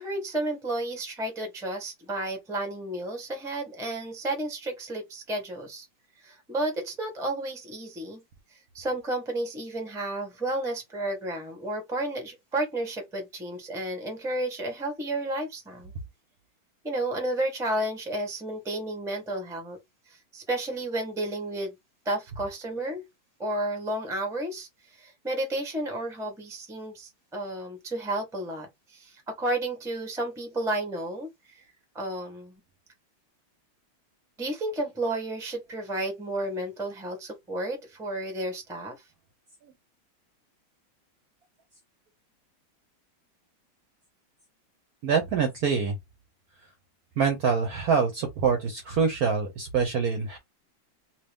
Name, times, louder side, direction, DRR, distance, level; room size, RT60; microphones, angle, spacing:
voice 1, 0.0-5.9 6.2-8.2 8.7-15.9 16.8-19.8 20.3-21.7 22.0-23.0 23.4-31.6 31.9-32.6 34.4-39.0, right 1 dB, ahead, 0.7 m, -32 dB
voice 2, 45.0-46.0 47.2-50.4, right 6 dB, 65° right, 1.0 m, -25 dB
2.9 x 2.9 x 3.4 m
omnidirectional pair, 2.2 m